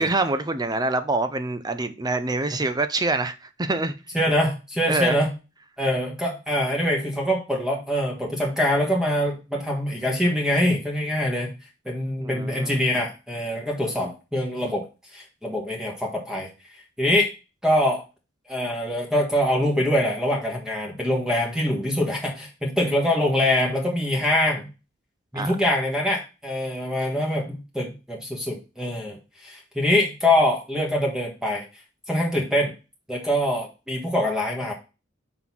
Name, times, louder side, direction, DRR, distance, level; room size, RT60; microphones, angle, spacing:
voice 1, 0.0-4.0 4.9-5.2 12.2-12.8 25.3-25.6, right 2 dB, 20° right, 0.6 m, -25 dB
voice 2, 4.1-5.4 5.8-11.5 11.8-14.9 15.1-16.5 17.0-17.3 17.6-18.0 18.5-24.7 25.3-31.6 32.1-32.7 33.1-34.7, left 1 dB, 5° right, 1.5 m, -24 dB
5.8 x 3.9 x 6.0 m
head